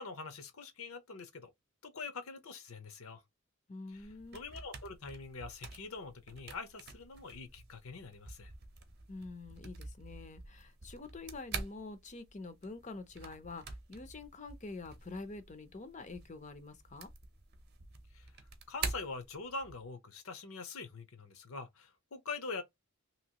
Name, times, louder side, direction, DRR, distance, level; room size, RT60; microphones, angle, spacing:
voice 1, 0.0-1.5 1.8-3.2 3.9-4.1 4.3-8.5 18.1-18.3 18.7-22.6, left 4 dB, 75° left, 0.8 m, -44 dB
voice 2, 3.7-4.4 9.1-17.1, left 3 dB, 35° left, 0.5 m, -46 dB
sound 1, 3.9-19.9, right 4 dB, 45° right, 0.7 m, -47 dB
2.9 x 2.9 x 2.8 m
head